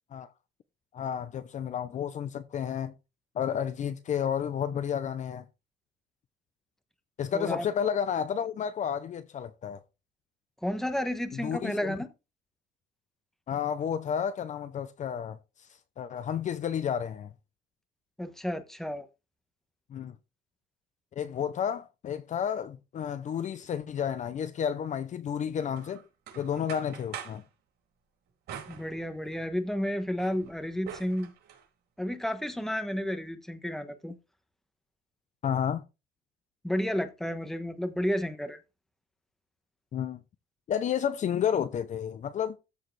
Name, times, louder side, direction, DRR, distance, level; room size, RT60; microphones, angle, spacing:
voice 1, 0.9-2.9 3.3-5.4 7.2-9.8 11.3-12.0 13.5-15.4 16.0-17.3 19.9-20.1 21.2-26.0 26.4-27.4 35.4-35.8 39.9-40.2 40.7-42.6, left 8 dB, 40° left, 0.7 m, -31 dB
voice 2, 7.3-7.6 10.6-12.1 18.2-19.1 28.7-31.3 32.0-34.1 36.6-38.6, equal, ahead, 1.2 m, -31 dB
sound 1, 25.8-27.5 28.5-29.5 29.9-31.7, right 9 dB, 65° right, 4.2 m, -45 dB
14.0 x 4.8 x 3.3 m
cardioid pair, 125°, 18 cm